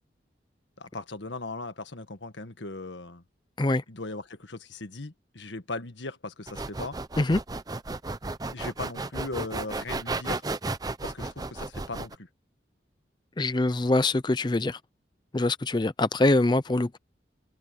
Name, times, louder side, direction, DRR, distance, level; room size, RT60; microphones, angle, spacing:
voice 1, 0.8-3.2 3.9-7.0 8.5-10.4 11.0-12.3, left 3 dB, 80° left, 1.6 m, -38 dB
sound 1, 6.5-12.2, right 3 dB, 20° right, 0.6 m, -33 dB
voice 2, 13.4-14.8 15.3-17.0, left 2 dB, 25° left, 0.5 m, -24 dB
head